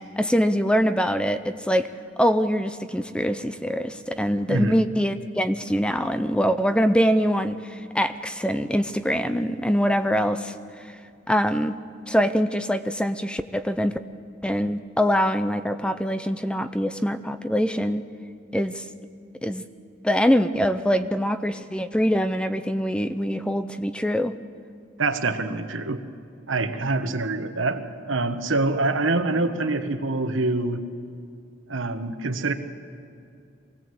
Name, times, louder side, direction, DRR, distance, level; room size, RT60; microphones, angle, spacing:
voice 1, 0.0-1.9 2.2-10.8 11.3-11.8 12.1-14.0 14.4-18.0 18.5-18.8 19.4-19.6 20.0-24.3, equal, 5° left, 11 dB, 0.5 m, -24 dB
voice 2, 4.5-4.8 25.0-26.0 26.5-30.8 31.7-32.5, right 2 dB, 85° right, 8 dB, 1.3 m, -25 dB
24.0 x 17.5 x 7.8 m, 2.5 s
head